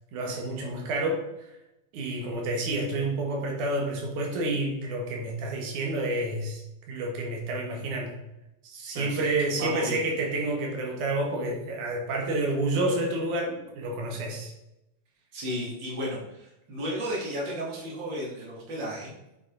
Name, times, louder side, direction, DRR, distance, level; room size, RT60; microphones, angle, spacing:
voice 1, 0.1-1.2 1.9-8.2 8.6-14.5, right 2 dB, 85° right, 0 dB, 3.0 m, -29 dB
voice 2, 8.9-10.0 15.3-19.1, equal, 40° right, -4 dB, 3.1 m, -34 dB
7.8 x 7.2 x 3.9 m, 0.90 s
omnidirectional pair, 3.4 m